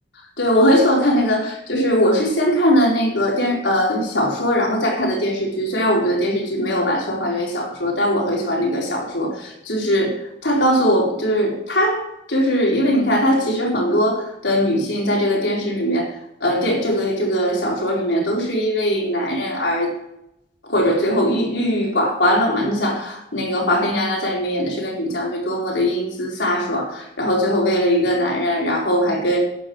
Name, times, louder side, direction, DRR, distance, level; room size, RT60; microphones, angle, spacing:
voice 1, 0.4-10.1 10.4-16.1 16.4-19.9 20.6-29.4, equal, 70° left, -2 dB, 4.3 m, -20 dB
12.5 x 10.0 x 4.7 m, 0.82 s
head